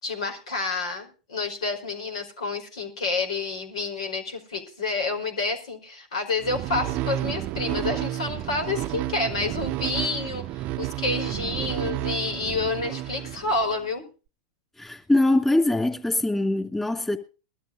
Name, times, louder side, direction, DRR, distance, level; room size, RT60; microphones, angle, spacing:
voice 1, 0.0-14.0, left 3 dB, 85° left, 5.0 m, -29 dB
sound 1, 6.4-13.9, right 15 dB, 50° right, 0.6 m, -31 dB
voice 2, 14.8-17.2, left 2 dB, 10° left, 2.8 m, -23 dB
22.0 x 13.0 x 2.6 m
hypercardioid pair, 100°, 3 cm